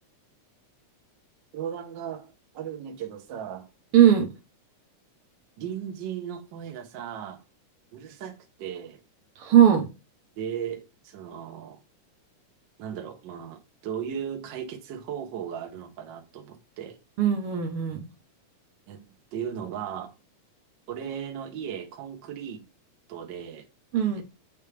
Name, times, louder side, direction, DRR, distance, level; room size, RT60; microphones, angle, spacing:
voice 1, 1.5-3.7 5.6-7.4 7.9-9.0 10.4-11.8 12.8-17.0 18.9-19.0 19.3-20.1 20.9-22.7 23.1-23.6 24.2-24.3, right 8 dB, 85° right, 1.0 m, -36 dB
voice 2, 3.9-4.3 9.4-9.9 17.2-18.0 23.9-24.2, right 10 dB, 65° right, 1.5 m, -19 dB
8.0 x 3.5 x 3.3 m
omnidirectional pair, 3.5 m